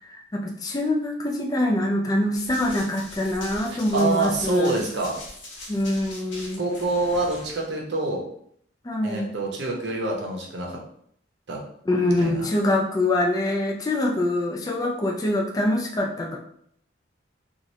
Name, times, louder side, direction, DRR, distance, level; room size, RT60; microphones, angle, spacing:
voice 1, 0.1-4.9 5.7-6.6 8.8-9.3 11.9-16.4, left 1 dB, 20° left, 0 dB, 0.4 m, -24 dB
Run, 2.4-7.7, left 1 dB, 75° left, 1.0 m, -42 dB
voice 2, 3.9-5.2 6.6-8.2 9.0-10.8 11.5-11.6 12.2-12.5, right 2 dB, 65° right, -1 dB, 0.7 m, -26 dB
3.0 x 2.5 x 2.6 m, 0.66 s
head